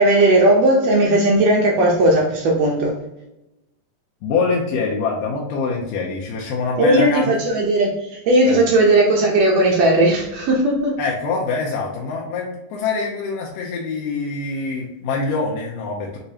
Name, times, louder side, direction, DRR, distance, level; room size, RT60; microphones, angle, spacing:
voice 1, 0.0-2.9 6.8-10.9, right 1 dB, 90° right, -2 dB, 1.4 m, -16 dB
voice 2, 4.2-7.3 8.5-8.6 11.0-16.2, left 4 dB, 80° left, -2 dB, 2.2 m, -24 dB
6.6 x 2.9 x 2.7 m, 0.93 s
omnidirectional pair, 3.9 m